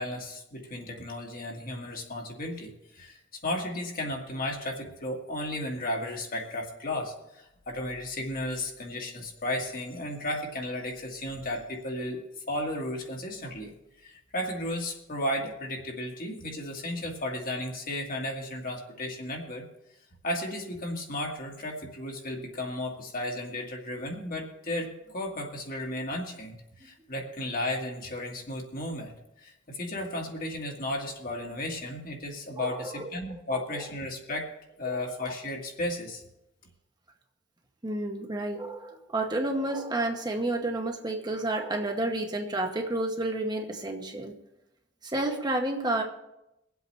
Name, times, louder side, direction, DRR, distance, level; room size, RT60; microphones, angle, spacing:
voice 1, 0.0-13.7 14.0-19.7 20.2-29.1 29.4-34.5 34.8-36.2, left 1 dB, 50° left, 0 dB, 1.9 m, -34 dB
voice 2, 32.5-33.1 33.5-33.6 34.8-35.0 37.8-44.3 45.0-46.0, right 2 dB, 20° right, 3 dB, 0.9 m, -30 dB
24.0 x 8.0 x 3.2 m, 0.87 s
head